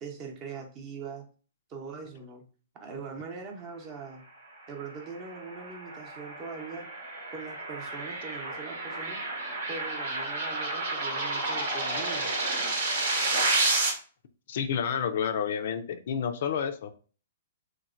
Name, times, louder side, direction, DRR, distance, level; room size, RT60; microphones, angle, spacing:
voice 1, 0.0-1.2 1.7-2.4 2.8-4.2 4.7-6.9 7.3-9.2 9.7-12.3, right 5 dB, 30° right, 2 dB, 0.7 m, -41 dB
sound 1, 5.0-13.9, right 2 dB, 65° right, 0.9 m, -30 dB
voice 2, 14.5-16.9, left 7 dB, 60° left, 8 dB, 0.3 m, -30 dB
3.0 x 2.1 x 2.4 m, 0.39 s
hypercardioid pair, 125°, 0 cm